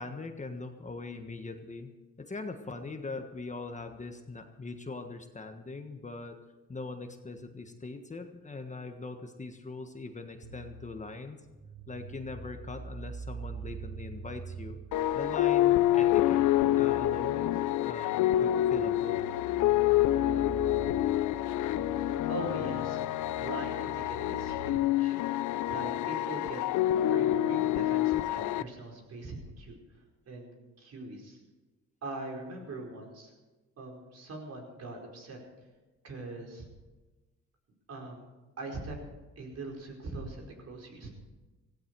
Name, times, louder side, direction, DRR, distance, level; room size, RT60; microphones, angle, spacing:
voice 1, 0.0-1.9 2.2-6.4 6.7-11.4 11.9-14.8 15.1-16.4 16.8-19.2, left 3 dB, 25° left, 6 dB, 1.4 m, -41 dB
sound 1, 10.4-24.7, right 4 dB, 85° right, 1.7 m, -45 dB
sound 2, 14.9-28.6, left 13 dB, 80° left, 0.6 m, -27 dB
voice 2, 22.3-23.0 23.4-25.2 25.7-29.7 30.3-31.4 32.0-33.3 33.8-35.4 36.0-36.7 37.9-38.3 38.6-39.0 39.4-41.2, right 2 dB, 55° right, 0 dB, 4.9 m, -41 dB
17.0 x 16.0 x 4.7 m, 1.2 s
cardioid pair, 90°, 30 cm